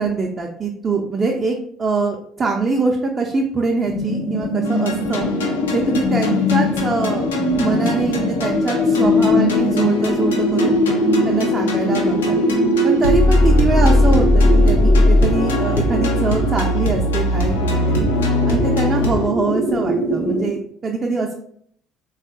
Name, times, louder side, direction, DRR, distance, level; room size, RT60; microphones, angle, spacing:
voice 1, 0.0-5.3 5.7-7.3 7.6-10.8 11.2-12.4 12.8-18.1 18.5-21.3, right 4 dB, 30° right, 1 dB, 0.4 m, -23 dB
sound 1, 3.9-20.5, left 1 dB, 25° left, 0.5 m, -21 dB
sound 2, 4.7-19.3, left 2 dB, 80° left, 0.4 m, -20 dB
3.4 x 2.3 x 2.6 m, 0.64 s
figure-of-eight pair, 55°, 0 cm